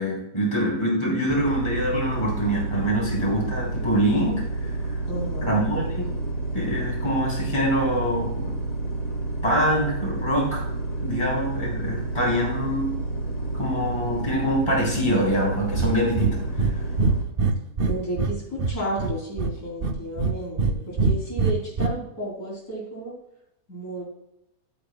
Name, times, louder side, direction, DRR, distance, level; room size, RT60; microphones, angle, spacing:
voice 1, 0.0-4.7 5.4-6.1 6.5-8.5 9.4-10.6 11.0-12.9 13.5-16.4, equal, 15° left, -4 dB, 3.7 m, -25 dB
sound 1, 1.3-17.2, right 2 dB, 40° left, 1.6 m, -30 dB
voice 2, 5.1-5.6 17.8-23.2 23.7-24.0, right 1 dB, 70° left, -3 dB, 3.8 m, -32 dB
Breathing, 15.7-15.9 16.2-16.3 16.6-16.7 17.0-18.3 18.6-19.5 19.8-20.7 21.0-21.9, right 4 dB, 50° right, 0.7 m, -22 dB
13.0 x 8.5 x 2.3 m, 0.83 s
omnidirectional pair, 1.7 m